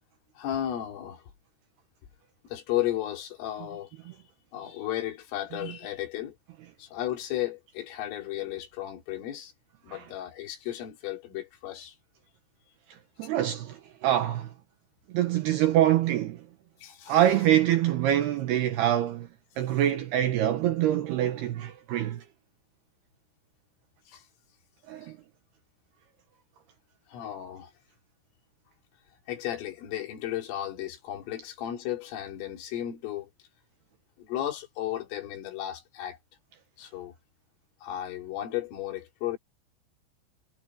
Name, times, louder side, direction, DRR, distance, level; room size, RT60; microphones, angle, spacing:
voice 1, 0.4-1.2 2.4-3.9 4.5-6.4 6.8-9.5 9.8-12.0 16.8-17.2 24.1-24.2 25.0-25.1 27.1-27.7 29.3-33.3 34.2-36.2 36.8-37.1 37.8-39.4, left 12 dB, 75° left, 5.6 m, -34 dB
voice 2, 12.9-14.5 15.1-16.5 17.1-19.3 19.6-22.2 24.9-25.2, right 12 dB, 75° right, 2.5 m, -25 dB
omnidirectional pair, 5.8 m